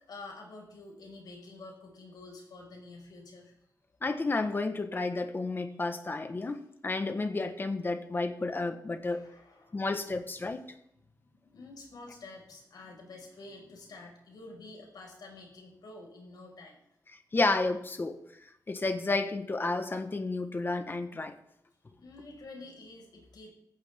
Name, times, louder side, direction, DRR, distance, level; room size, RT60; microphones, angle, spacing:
voice 1, 0.1-3.6 5.8-5.9 9.0-9.9 11.0-16.8 21.9-23.5, left 2 dB, 75° left, 0 dB, 5.6 m, -49 dB
voice 2, 4.0-9.2 9.7-10.6 17.3-18.2 18.7-21.3, left 3 dB, 30° left, 8 dB, 1.3 m, -31 dB
16.5 x 15.0 x 3.7 m, 0.81 s
wide cardioid pair, 130°, 7 cm